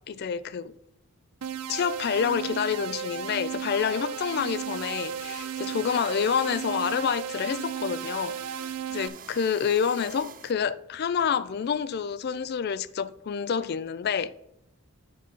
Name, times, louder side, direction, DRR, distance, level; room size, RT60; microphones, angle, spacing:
voice 1, 0.1-0.7 1.7-8.3 8.9-14.3, left 7 dB, 45° left, 0.3 m, -28 dB
sound 1, 1.4-9.1, right 8 dB, 85° right, 0.5 m, -35 dB
sound 2, 4.1-10.5, right 8 dB, 40° right, 0.4 m, -45 dB
7.4 x 5.6 x 4.4 m
head